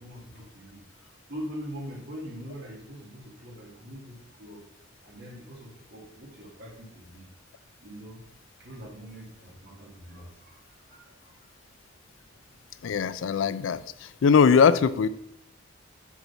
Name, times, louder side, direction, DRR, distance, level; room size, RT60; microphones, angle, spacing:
voice 1, 0.0-4.6 5.0-7.3 7.8-8.2 8.6-11.5, equal, 60° right, -1 dB, 2.0 m, -43 dB
voice 2, 12.8-13.8 14.2-15.1, left 6 dB, 85° left, 14 dB, 0.4 m, -20 dB
7.4 x 4.0 x 5.5 m, 0.75 s
head